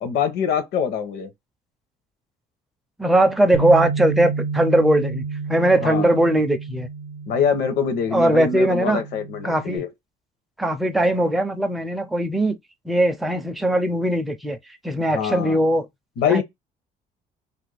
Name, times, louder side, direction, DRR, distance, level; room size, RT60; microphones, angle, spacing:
voice 1, 0.0-1.3 5.8-6.1 7.3-9.9 15.1-15.6 16.2-16.4, left 7 dB, 80° left, 0.8 m, -24 dB
voice 2, 3.0-6.9 8.1-9.0 9.4-9.8 10.6-12.6 12.9-14.6 14.8-15.9 16.3-16.4, right 1 dB, ahead, 0.4 m, -20 dB
Bass guitar, 3.5-9.8, right 5 dB, 60° right, 0.5 m, -30 dB
2.5 x 2.1 x 3.3 m
cardioid pair, 110°, 17 cm